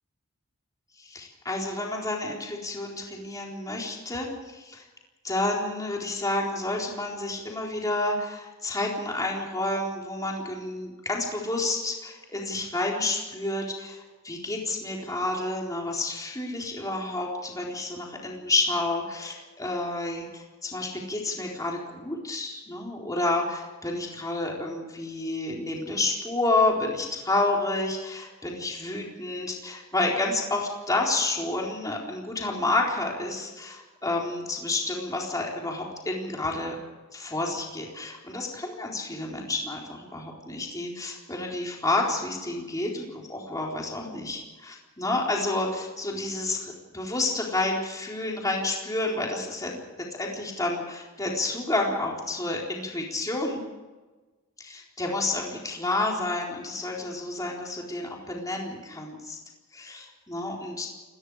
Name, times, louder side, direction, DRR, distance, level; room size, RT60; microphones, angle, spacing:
voice 1, 1.0-4.9 5.2-36.8 37.1-49.8 50.1-53.6 54.6-59.4 59.7-60.9, left 2 dB, 15° left, -1 dB, 4.1 m, -30 dB
28.5 x 19.5 x 5.0 m, 1.2 s
head